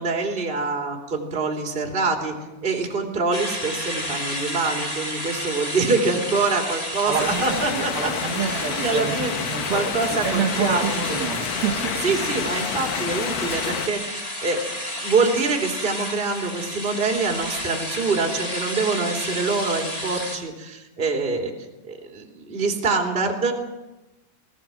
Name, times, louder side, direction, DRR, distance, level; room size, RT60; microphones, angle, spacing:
voice 1, 0.0-2.3 2.6-8.1 8.4-9.3 9.7-11.0 12.0-21.5 21.9-23.5, right 4 dB, 15° right, 2 dB, 2.3 m, -25 dB
sound 1, 3.3-20.4, equal, 15° left, 1.1 m, -31 dB
voice 2, 7.1-12.2, right 7 dB, 65° right, 4 dB, 2.8 m, -28 dB
sound 2, 7.2-13.9, left 10 dB, 75° left, 2.2 m, -30 dB
20.5 x 18.0 x 7.6 m, 1.0 s
omnidirectional pair, 5.1 m